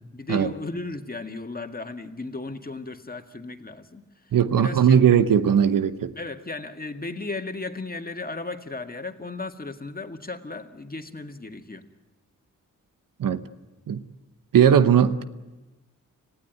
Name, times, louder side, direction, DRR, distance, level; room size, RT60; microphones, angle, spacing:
voice 1, 0.1-5.0 6.2-11.8, left 3 dB, 25° left, 6 dB, 1.9 m, -35 dB
voice 2, 4.3-6.1 13.2-13.4 13.9-14.0 14.5-15.2, right 8 dB, 70° right, 13 dB, 1.0 m, -18 dB
26.0 x 16.0 x 9.4 m, 1.1 s
cardioid pair, 50°, 34 cm